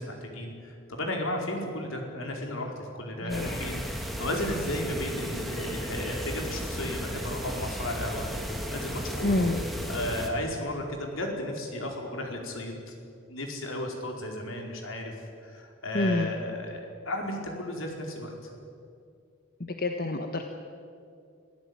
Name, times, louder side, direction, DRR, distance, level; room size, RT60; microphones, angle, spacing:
voice 1, 0.0-8.3 8.7-9.5 9.9-12.9 13.3-15.1 15.4-18.5, left 1 dB, 85° left, 2 dB, 4.8 m, -34 dB
voice 2, 3.2-3.6 9.2-9.6 15.9-16.3 19.8-20.4, left 2 dB, 50° left, 5 dB, 1.4 m, -27 dB
sound 1, 3.3-10.3, equal, ahead, 2.8 m, -34 dB
26.5 x 16.5 x 9.8 m, 2.4 s
head